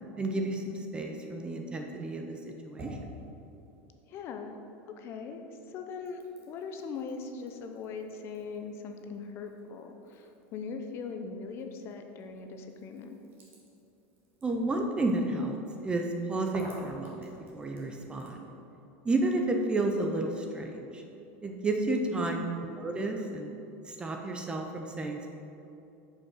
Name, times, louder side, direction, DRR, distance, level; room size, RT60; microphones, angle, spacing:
voice 1, 0.2-2.2 2.6-3.0 14.4-18.5 19.0-21.0 21.4-23.5 23.9-25.3, right 2 dB, 15° right, 3 dB, 0.5 m, -31 dB
sound 1, 2.2-4.9 5.2-18.5, right 1 dB, 30° right, 1.6 m, -53 dB
voice 2, 4.1-4.6 5.0-5.4 5.7-13.1 21.9-22.5, left 5 dB, 35° left, 5 dB, 0.6 m, -40 dB
6.8 x 5.4 x 5.6 m, 2.7 s
supercardioid pair, 155°, 7 cm